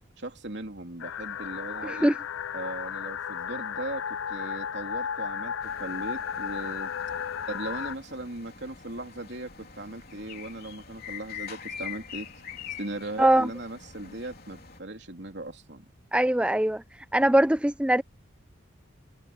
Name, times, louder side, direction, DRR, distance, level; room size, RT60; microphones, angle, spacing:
voice 1, 0.2-2.1 2.5-6.9 7.5-12.3 12.8-15.8, right 1 dB, 55° right, 3.4 m, -38 dB
sound 1, 1.0-7.9, left 8 dB, 75° left, 0.4 m, -34 dB
voice 2, 1.8-2.1 13.2-13.5 16.1-16.8 17.1-18.0, right 1 dB, 5° right, 0.4 m, -22 dB
sound 2, 5.6-14.8, left 7 dB, 50° left, 3.5 m, -44 dB
head